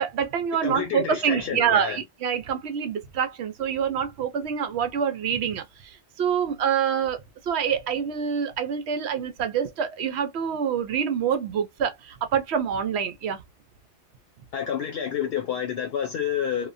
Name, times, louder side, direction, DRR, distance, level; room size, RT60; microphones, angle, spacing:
voice 1, 0.0-13.4, right 7 dB, 70° right, 0.8 m, -26 dB
voice 2, 0.6-2.0 14.5-16.7, left 8 dB, 65° left, 0.8 m, -29 dB
2.9 x 2.1 x 2.5 m
omnidirectional pair, 1.2 m